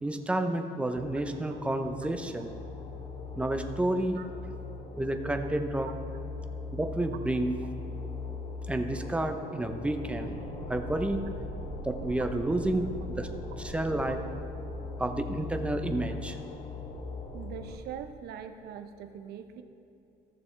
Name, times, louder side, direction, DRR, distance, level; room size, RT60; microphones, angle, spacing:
voice 1, 0.0-2.5 3.4-4.2 5.0-5.9 6.7-7.5 8.7-10.4 10.7-11.2 11.8-13.3 13.6-14.2 15.0-16.4, right 1 dB, 5° right, 6 dB, 0.7 m, -30 dB
sound 1, 0.9-17.8, left 3 dB, 35° left, 0.9 m, -40 dB
voice 2, 17.3-19.6, right 8 dB, 70° right, 8 dB, 0.7 m, -42 dB
15.0 x 6.9 x 3.3 m, 2.8 s
cardioid pair, 110°, 17 cm